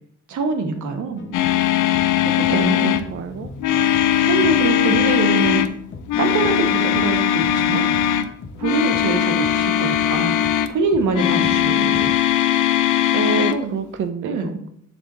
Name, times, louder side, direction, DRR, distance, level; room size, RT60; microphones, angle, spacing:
voice 1, 0.3-1.2 2.2-2.9 4.3-5.6 6.1-7.8 8.6-10.3 10.7-12.1 13.4-13.7 14.2-14.6, right 4 dB, 75° right, 6 dB, 1.1 m, -24 dB
sound 1, 1.2-12.1, left 3 dB, 40° left, 0.8 m, -39 dB
sound 2, 1.3-3.1 3.6-5.7 6.1-8.3 8.6-10.7 11.1-13.6, left 11 dB, 85° left, 0.5 m, -19 dB
voice 2, 2.5-3.5 11.4-12.1 13.1-14.7, right 7 dB, 45° right, 9 dB, 0.4 m, -28 dB
7.4 x 3.5 x 3.8 m, 0.70 s
cardioid pair, 90°, 30 cm